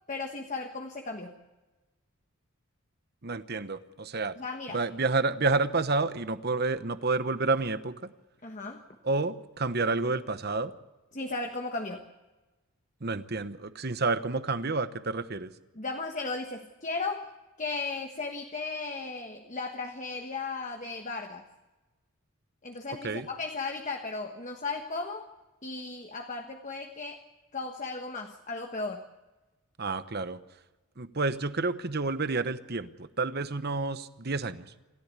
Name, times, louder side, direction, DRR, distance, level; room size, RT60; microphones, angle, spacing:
voice 1, 0.1-1.4 4.4-4.8 8.4-8.8 11.1-12.0 15.7-17.3 17.6-21.4 22.6-25.3 25.6-27.2 27.5-29.0, left 3 dB, 35° left, 4 dB, 1.3 m, -35 dB
voice 2, 3.2-4.3 4.7-8.1 9.0-10.7 13.0-15.5 23.0-23.3 29.8-30.4 31.0-34.7, right 3 dB, 45° right, 12 dB, 1.0 m, -29 dB
27.5 x 14.5 x 8.3 m, 1.2 s
head